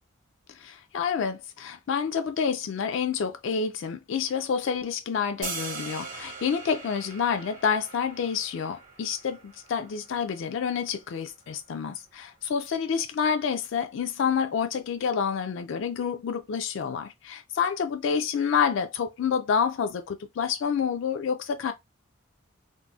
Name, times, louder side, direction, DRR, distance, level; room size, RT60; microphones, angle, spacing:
voice 1, 0.5-21.7, left 6 dB, 60° left, 0.3 m, -28 dB
sound 1, 5.4-11.5, right 4 dB, 40° right, 0.8 m, -41 dB
3.8 x 2.0 x 2.3 m
head